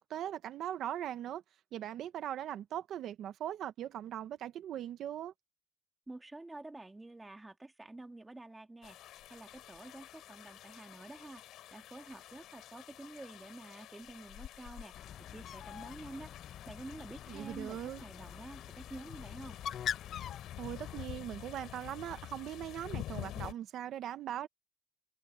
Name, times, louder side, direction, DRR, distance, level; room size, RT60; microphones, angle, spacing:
voice 1, 0.0-1.4 1.7-5.3 17.3-18.0 20.6-24.5, right 11 dB, 80° right, 0.9 m, -40 dB
voice 2, 6.1-11.4 11.7-16.3 16.7-19.6, right 2 dB, 15° right, 2.7 m, -49 dB
sound 1, 8.8-23.5, left 13 dB, 85° left, 4.2 m, -49 dB
Bird, 14.9-21.0, left 9 dB, 65° left, 0.6 m, -44 dB
cardioid pair, 90°, 0 cm